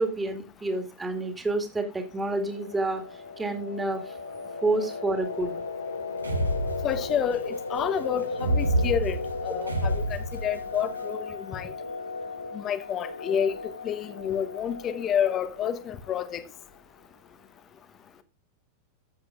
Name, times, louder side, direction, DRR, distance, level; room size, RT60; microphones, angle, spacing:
voice 1, 0.0-3.0 3.4-4.0 4.6-5.6, right 2 dB, 10° right, 2.1 m, -28 dB
sound 1, 1.9-16.5, left 4 dB, 80° left, 0.9 m, -36 dB
sound 2, 6.2-7.3 8.3-10.8, right 1 dB, 80° right, 1.2 m, -28 dB
voice 2, 6.8-11.7 12.5-13.6 13.8-16.4, left 8 dB, 30° left, 1.0 m, -29 dB
14.5 x 7.9 x 2.4 m
figure-of-eight pair, 90°, 0 cm